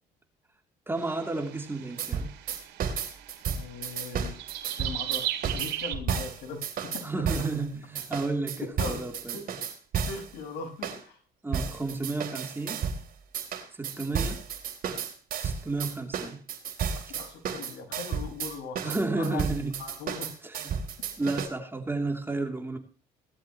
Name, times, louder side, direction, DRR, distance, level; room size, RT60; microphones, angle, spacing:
voice 1, 0.9-2.3 7.0-9.4 11.4-12.9 13.8-14.5 14.9-15.0 15.4-16.4 18.8-19.8 20.4-20.6 21.2-22.8, right 3 dB, 15° right, 2.9 m, -32 dB
sound 1, 1.0-6.0, right 13 dB, 80° right, 2.5 m, -37 dB
sound 2, 2.0-7.6 8.0-10.3 10.8-11.0 11.5-13.0 13.3-21.5, right 7 dB, 55° right, 3.5 m, -32 dB
voice 2, 3.4-4.4 4.8-6.6 6.9-7.0 7.3-7.4 8.8-9.0 9.3-9.4 10.1-11.2 14.1-14.4 17.1-19.4 19.8-20.4, left 5 dB, 80° left, 5.6 m, -40 dB
18.5 x 12.5 x 3.0 m
cardioid pair, 110°, 17 cm